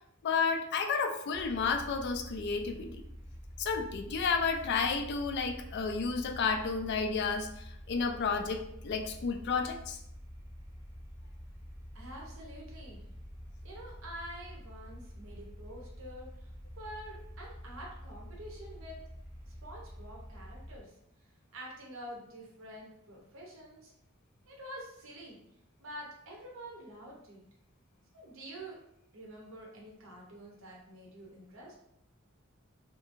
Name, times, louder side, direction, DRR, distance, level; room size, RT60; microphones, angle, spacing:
voice 1, 0.2-3.0 3.6-10.0, left 5 dB, 55° left, 6 dB, 0.3 m, -31 dB
sound 1, 1.3-20.8, equal, 15° right, 0.6 m, -47 dB
voice 2, 11.9-13.0 13.6-19.0 19.5-20.9 21.5-23.9 24.5-25.4 25.8-27.4 28.1-28.8 29.1-31.8, right 1 dB, 70° right, -2 dB, 0.7 m, -47 dB
2.8 x 2.6 x 2.5 m, 0.76 s
head